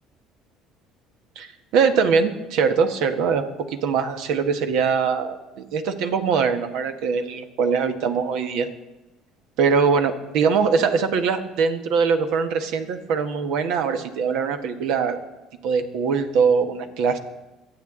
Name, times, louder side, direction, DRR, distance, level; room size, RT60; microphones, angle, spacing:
voice 1, 1.4-8.7 9.6-15.2 15.6-17.2, right 5 dB, 75° right, 7 dB, 1.2 m, -22 dB
24.0 x 8.2 x 3.7 m, 1.0 s
supercardioid pair, 85°, 0 cm